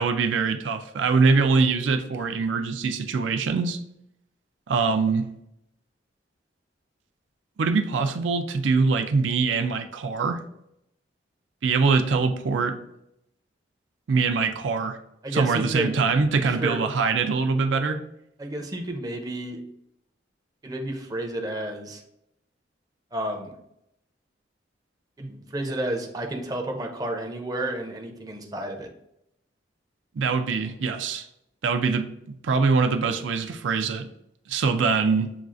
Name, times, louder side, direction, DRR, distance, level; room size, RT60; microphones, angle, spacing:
voice 1, 0.0-3.8 4.7-5.3 7.6-10.4 11.6-12.8 14.1-15.0 15.3-18.0 30.2-31.3 31.6-34.1 34.5-35.3, right 4 dB, 85° right, 7 dB, 0.4 m, -23 dB
voice 2, 15.2-15.9 16.4-16.8 18.4-19.6 20.6-22.0 23.1-23.6 25.2-28.9, right 1 dB, 20° right, 2 dB, 0.5 m, -31 dB
7.0 x 2.4 x 2.4 m, 0.78 s
head